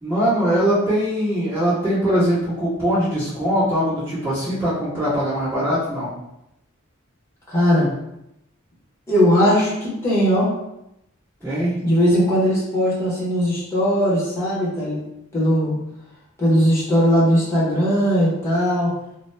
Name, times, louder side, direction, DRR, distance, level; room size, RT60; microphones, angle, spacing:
voice 1, 0.0-6.1 11.4-11.8, equal, 15° right, -15 dB, 1.4 m, -21 dB
voice 2, 7.5-7.9 9.1-10.5 11.8-15.0 15.3-15.7 16.4-18.9, equal, 15° left, -7 dB, 1.0 m, -19 dB
2.8 x 2.1 x 3.3 m, 0.83 s
head